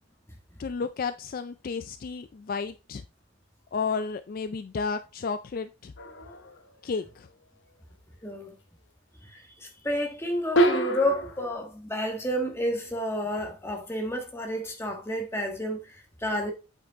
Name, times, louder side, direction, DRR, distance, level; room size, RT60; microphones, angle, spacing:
voice 1, 0.6-3.0 3.7-5.9 6.8-7.3, left 5 dB, 45° left, 0.3 m, -32 dB
sound 1, 6.0-6.6 10.6-11.5, right 1 dB, 60° left, 1.0 m, -26 dB
voice 2, 8.2-8.5 9.2-16.5, equal, 10° left, 1.4 m, -30 dB
8.4 x 5.4 x 3.5 m
head